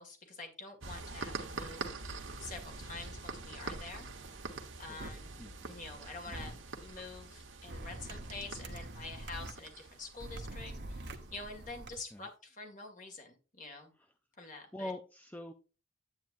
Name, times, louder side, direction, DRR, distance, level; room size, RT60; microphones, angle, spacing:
voice 1, 0.0-1.9 2.4-4.1 4.8-5.4 5.6-13.9 14.4-14.9, left 3 dB, 40° left, 4 dB, 2.0 m, -47 dB
sound 1, 0.8-12.0, right 3 dB, 75° right, 1.3 m, -45 dB
sound 2, 5.0-5.1 6.3-6.5 7.7-9.5 10.2-11.9, right 1 dB, 55° right, 1.0 m, -44 dB
voice 2, 14.7-15.5, left 1 dB, 10° left, 6 dB, 0.5 m, -43 dB
9.5 x 8.6 x 2.6 m, 0.33 s
head